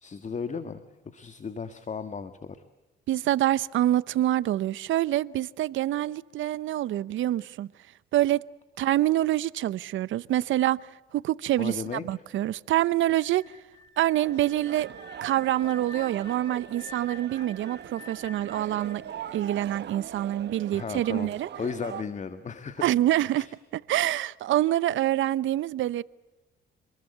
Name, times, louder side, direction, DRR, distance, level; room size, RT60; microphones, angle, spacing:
voice 1, 0.0-0.8 1.1-2.6 11.6-12.0 20.7-21.3 21.6-22.8 23.4-23.5, left 5 dB, 35° left, 1.7 m, -35 dB
voice 2, 3.1-7.7 8.1-8.4 8.8-10.8 11.1-13.4 14.0-14.9 15.2-19.0 19.3-21.5 22.8-23.5 23.7-26.0, right 13 dB, 75° right, 0.8 m, -26 dB
sound 1, 13.1-20.0, left 1 dB, 80° left, 4.2 m, -48 dB
sound 2, 14.2-22.0, right 9 dB, 60° right, 1.5 m, -41 dB
27.5 x 21.0 x 8.0 m
cardioid pair, 90°, 20 cm